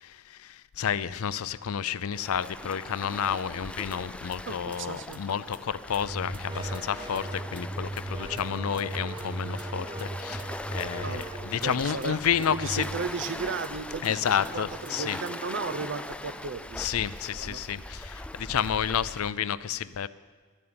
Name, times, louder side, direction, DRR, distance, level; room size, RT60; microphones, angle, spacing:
voice 1, 0.0-12.8 14.0-15.2 16.8-20.1, left 8 dB, 70° left, 17 dB, 0.5 m, -30 dB
Waves surf, 2.1-19.3, left 1 dB, 5° left, 0.3 m, -41 dB
sound 1, 3.9-4.0 4.3-4.4 4.7-5.2 5.5-5.6 5.9-13.3 13.6-13.7 14.0-14.1 14.4-15.3, right 2 dB, 20° right, 0.8 m, -38 dB
voice 2, 4.5-5.2 11.0-11.3 11.6-12.2 12.5-14.3 14.5-16.9 17.4-17.6, right 4 dB, 55° right, 13 dB, 0.7 m, -35 dB
12.5 x 11.0 x 8.7 m, 1.5 s
head